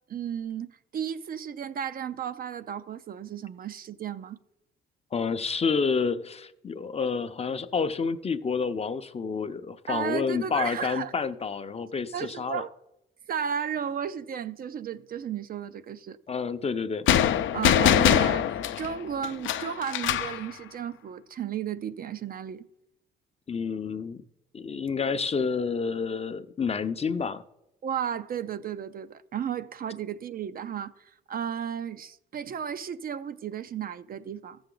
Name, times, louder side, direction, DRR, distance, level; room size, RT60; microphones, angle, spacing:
voice 1, 0.1-4.4 9.9-11.1 12.1-12.7 13.3-16.2 17.5-22.7 27.8-34.6, right 8 dB, 50° right, 0.5 m, -34 dB
voice 2, 5.1-12.6 16.3-17.1 23.5-24.2 24.5-27.4, left 5 dB, 30° left, 0.6 m, -29 dB
sound 1, 17.1-20.4, left 10 dB, 75° left, 0.6 m, -23 dB
14.5 x 7.0 x 3.8 m
cardioid pair, 90°, 20 cm